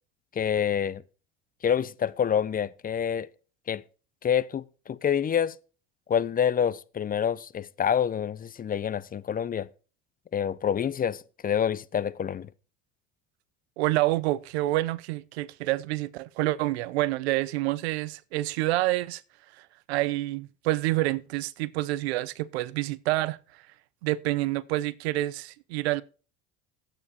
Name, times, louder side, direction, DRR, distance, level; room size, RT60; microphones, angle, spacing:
voice 1, 0.4-1.0 1.6-3.3 3.7-3.8 4.2-5.6 6.1-9.7 10.3-12.5, left 8 dB, 30° left, 0.6 m, -27 dB
voice 2, 13.8-19.2 19.6-23.4 24.0-26.0, right 17 dB, 90° right, 0.7 m, -28 dB
9.8 x 9.0 x 4.2 m
supercardioid pair, 95°, 31 cm